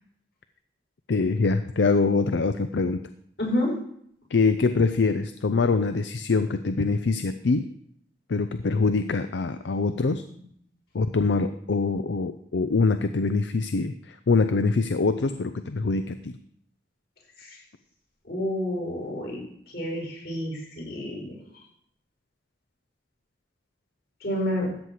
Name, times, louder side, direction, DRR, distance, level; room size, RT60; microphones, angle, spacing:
voice 1, 1.1-3.0 4.3-7.7 8.3-10.2 10.9-16.4, left 4 dB, 85° left, 10 dB, 0.5 m, -24 dB
voice 2, 3.4-3.7 10.3-10.4 17.4-17.6 18.2-19.4 19.7-21.4 24.2-24.7, left 1 dB, 65° left, -3 dB, 6.2 m, -29 dB
13.5 x 4.7 x 8.2 m, 0.68 s
head